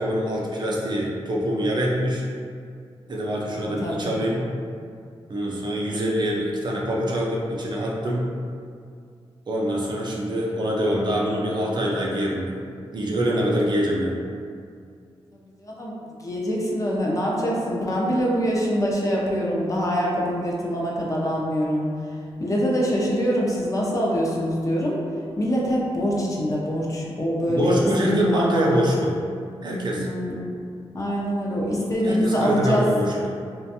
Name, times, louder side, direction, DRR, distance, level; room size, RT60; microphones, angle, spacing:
voice 1, 0.0-2.2 3.1-4.5 5.3-8.3 9.5-12.6 12.9-14.2 27.5-29.2 29.6-30.1 32.0-33.4, equal, 45° right, -3 dB, 0.4 m, -24 dB
voice 2, 15.6-15.9 16.2-21.9 22.4-25.0 25.4-27.8 28.0-28.8 30.0-30.3 30.9-32.9, equal, 35° left, -3 dB, 0.4 m, -24 dB
2.4 x 2.2 x 2.7 m, 2.3 s
wide cardioid pair, 100°, 10 cm